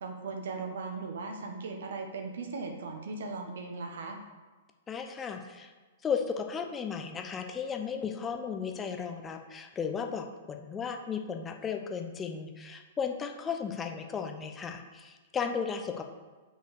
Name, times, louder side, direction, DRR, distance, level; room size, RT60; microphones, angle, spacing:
voice 1, 0.0-4.2, right 4 dB, 65° right, 4 dB, 1.3 m, -38 dB
voice 2, 4.9-5.7 6.0-16.0, left 6 dB, 20° left, 4 dB, 0.8 m, -35 dB
6.0 x 5.3 x 6.8 m, 1.3 s
figure-of-eight pair, 105°, 0 cm